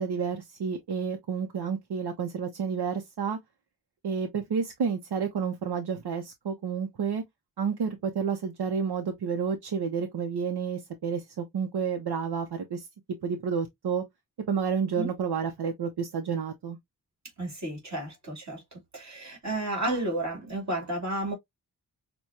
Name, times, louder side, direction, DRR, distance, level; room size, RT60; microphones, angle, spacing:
voice 1, 0.0-3.4 4.0-7.2 7.6-12.8 13.2-14.0 14.5-16.8, right 6 dB, 80° right, 0.8 m, -30 dB
voice 2, 17.4-21.3, right 1 dB, 45° right, 2.5 m, -32 dB
6.0 x 2.3 x 2.6 m
wide cardioid pair, 145°, 39 cm